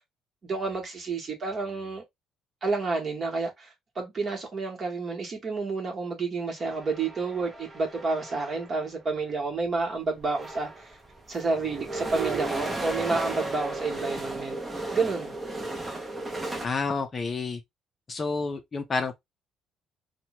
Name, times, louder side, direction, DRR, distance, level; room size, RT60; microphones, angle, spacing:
voice 1, 0.4-2.0 2.6-3.7 3.9-10.9 11.3-14.6 14.9-15.3, right 3 dB, 35° right, 1.0 m, -30 dB
sound 1, 6.6-8.8 9.8-9.9 10.2-16.7, right 2 dB, 15° right, 0.6 m, -35 dB
voice 2, 16.6-17.6 18.1-19.2, left 4 dB, 30° left, 0.4 m, -29 dB
2.9 x 2.1 x 2.9 m
cardioid pair, 130°, 0 cm